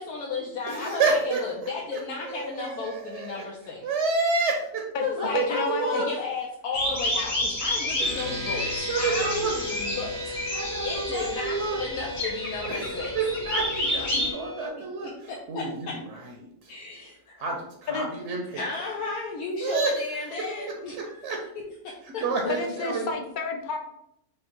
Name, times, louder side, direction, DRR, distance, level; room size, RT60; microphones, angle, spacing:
voice 1, 0.0-3.8 5.0-10.5 10.8-13.1 15.0-15.9 16.7-17.4 18.5-21.2 21.8-22.2, left 4 dB, 85° left, -4 dB, 1.2 m, -34 dB
voice 2, 0.7-2.0 2.2-3.5 3.8-4.8 5.2-6.1 8.0-8.2 8.9-9.5 10.5-11.8 12.6-16.7 17.4-18.7 19.6-20.3 20.7-21.4 22.0-23.1, right 4 dB, 60° right, 1 dB, 0.9 m, -29 dB
voice 3, 5.3-6.0 17.9-18.1 22.5-23.8, left 4 dB, 55° left, 4 dB, 0.5 m, -30 dB
Vogelstimmen im Niedtal, 6.7-14.3, left 1 dB, 35° left, 1.1 m, -30 dB
sound 1, 8.0-14.7, left 1 dB, 45° right, 0.5 m, -36 dB
5.0 x 2.2 x 4.4 m, 0.76 s
omnidirectional pair, 1.5 m